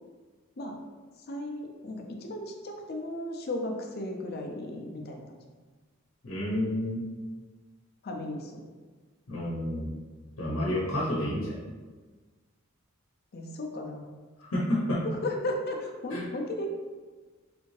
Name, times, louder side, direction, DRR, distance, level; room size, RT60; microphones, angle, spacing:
voice 1, 1.3-5.4 8.0-8.6 10.5-10.7 13.3-14.1 15.2-16.7, left 1 dB, 50° left, 2 dB, 0.5 m, -35 dB
voice 2, 6.2-7.0 9.3-9.9 10.4-11.6 14.5-15.0 16.1-16.2, left 1 dB, 85° left, -6 dB, 0.8 m, -29 dB
3.3 x 2.7 x 3.1 m, 1.4 s
head